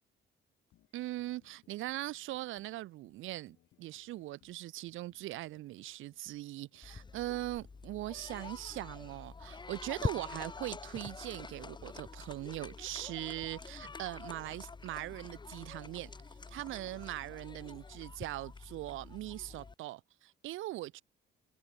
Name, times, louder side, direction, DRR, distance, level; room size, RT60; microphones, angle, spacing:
sound 1, 0.7-13.6, left 14 dB, 85° left, 6.9 m, -70 dB
voice 1, 0.9-16.1 16.5-21.0, right 16 dB, 80° right, 0.6 m, -41 dB
sound 2, 6.8-19.7, left 4 dB, 20° left, 1.1 m, -45 dB
cardioid pair, 90°, 20 cm